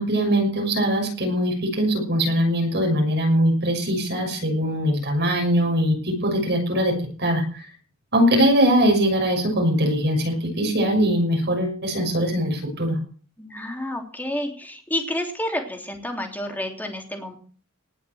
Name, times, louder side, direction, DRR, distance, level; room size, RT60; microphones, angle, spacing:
voice 1, 0.0-6.9 7.2-7.7 8.1-13.0, equal, 55° right, 3 dB, 6.3 m, -21 dB
voice 2, 13.4-17.3, left 1 dB, 10° left, 2 dB, 3.1 m, -30 dB
19.0 x 6.6 x 7.7 m, 0.43 s
head